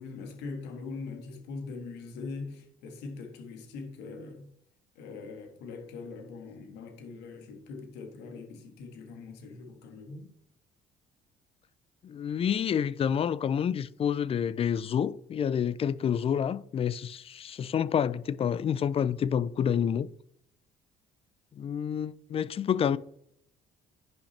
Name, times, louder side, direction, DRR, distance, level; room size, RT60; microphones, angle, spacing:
voice 1, 0.0-4.5 4.9-10.3, left 4 dB, 85° left, 1.6 m, -42 dB
voice 2, 12.0-20.1 21.5-23.0, left 8 dB, 35° left, 0.4 m, -28 dB
10.5 x 5.7 x 3.3 m
cardioid pair, 110°, 17 cm